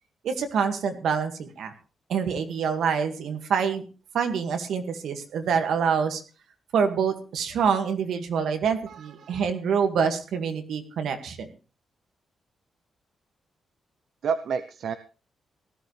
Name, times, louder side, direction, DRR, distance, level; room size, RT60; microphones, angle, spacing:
voice 1, 0.2-1.7 2.1-3.8 4.1-6.2 6.7-11.5, right 6 dB, 80° right, 6 dB, 2.1 m, -26 dB
voice 2, 8.9-9.4 14.2-14.9, right 6 dB, 65° right, 10 dB, 0.7 m, -30 dB
18.0 x 14.0 x 3.4 m, 0.35 s
wide cardioid pair, 170°, 0 cm